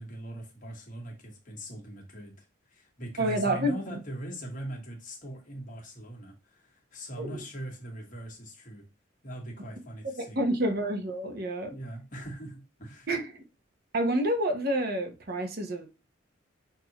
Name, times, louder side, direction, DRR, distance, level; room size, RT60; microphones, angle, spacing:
voice 1, 0.0-8.8 9.2-10.4 11.7-13.1, right 1 dB, 40° left, 1.4 m, -41 dB
voice 2, 3.2-4.0 7.2-7.4 10.2-11.7 13.1-13.4 13.9-15.9, right 1 dB, 50° right, 0.9 m, -29 dB
5.8 x 2.8 x 2.9 m
head